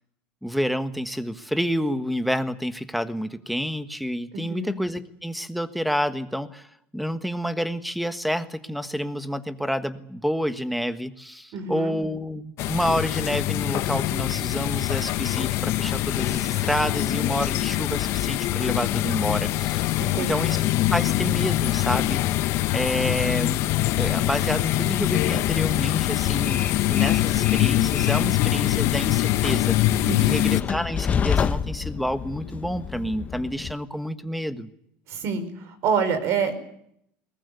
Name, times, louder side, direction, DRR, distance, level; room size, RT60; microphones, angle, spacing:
voice 1, 0.4-6.7 6.9-20.6 20.9-22.2 22.7-23.7 24.0-34.7, equal, ahead, 10 dB, 1.4 m, -29 dB
voice 2, 4.3-4.8 11.5-11.9 20.0-20.6 30.1-30.5 35.1-36.5, right 5 dB, 55° right, 11 dB, 5.0 m, -27 dB
sound 1, 12.6-30.6, left 16 dB, 60° left, 0.9 m, -24 dB
Train, 25.4-33.7, left 7 dB, 30° left, 0.9 m, -31 dB
21.5 x 20.0 x 8.4 m, 0.74 s
cardioid pair, 130°, 5 cm